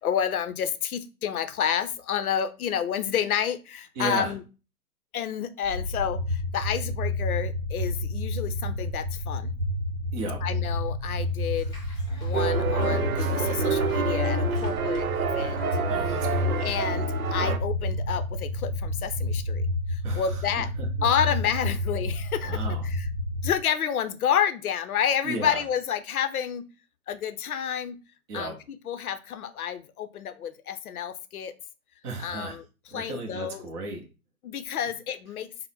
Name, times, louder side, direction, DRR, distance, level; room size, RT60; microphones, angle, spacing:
voice 1, 0.0-4.4 5.1-9.5 10.4-15.6 16.6-19.6 19.9-20.7 21.0-22.6 22.8-23.1 23.4-26.6 27.1-28.0 28.3-31.5 32.2-32.6 32.9-33.6 34.4-35.5, left 8 dB, 70° left, 10 dB, 0.6 m, -29 dB
voice 2, 4.0-4.3 10.1-10.4 15.9-16.6 20.0-21.1 22.4-22.9 25.2-25.6 28.3-28.6 32.0-32.6 32.9-34.0, right 3 dB, 20° right, 1 dB, 0.6 m, -35 dB
sound 1, 5.6-23.6, left 1 dB, 50° right, 1.2 m, -30 dB
Child speech kid speaking / Bathtub (filling or washing), 11.5-12.4 12.8-17.0, left 1 dB, 10° left, 0.8 m, -45 dB
sound 2, 12.3-17.6, right 6 dB, 70° right, 0.6 m, -28 dB
3.6 x 2.0 x 3.9 m, 0.32 s
figure-of-eight pair, 125°, 45 cm